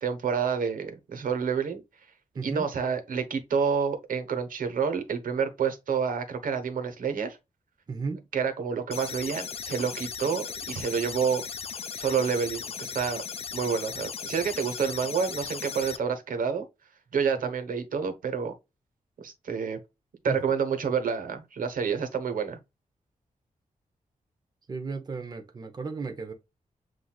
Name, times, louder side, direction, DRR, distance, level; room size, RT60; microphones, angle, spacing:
voice 1, 0.0-1.8 2.4-7.4 8.3-11.4 11.9-13.2 13.5-16.7 17.1-18.5 19.2-19.8 20.2-22.6, right 6 dB, 90° right, 1.1 m, -28 dB
voice 2, 2.4-2.7 7.9-8.2 17.4-17.5 20.3-20.4 24.7-26.3, right 4 dB, 30° right, 0.7 m, -34 dB
sound 1, 8.9-16.0, left 6 dB, 45° left, 0.5 m, -37 dB
7.5 x 2.6 x 2.4 m
wide cardioid pair, 175°, 14 cm